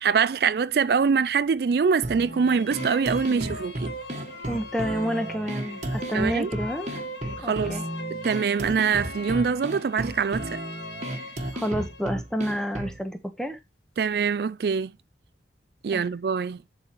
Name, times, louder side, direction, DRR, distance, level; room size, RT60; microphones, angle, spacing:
voice 1, 0.0-3.9 6.1-6.5 7.4-7.8 8.2-10.6 14.0-14.9 15.8-16.6, right 6 dB, 60° right, 0.4 m, -24 dB
sound 1, 2.0-13.0, right 1 dB, 40° right, 1.5 m, -34 dB
sound 2, 2.1-12.1, equal, 80° left, 1.7 m, -40 dB
voice 2, 4.5-6.9 7.4-7.8 11.5-13.6 15.9-16.1, equal, 5° left, 1.2 m, -29 dB
10.5 x 4.2 x 4.5 m
head